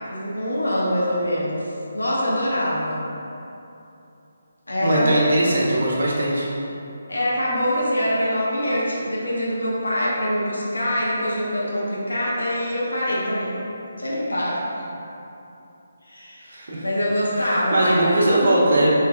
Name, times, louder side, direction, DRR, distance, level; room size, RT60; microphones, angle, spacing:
voice 1, 0.1-3.0 4.7-5.4 7.1-13.6 14.0-14.9 16.0-16.5 16.8-18.1, equal, 75° left, -6 dB, 1.1 m, -24 dB
voice 2, 4.8-6.5 16.4-16.9 17.3-18.9, right 1 dB, 55° right, -5 dB, 0.9 m, -20 dB
5.5 x 3.2 x 2.3 m, 2.9 s
figure-of-eight pair, 145°, 0 cm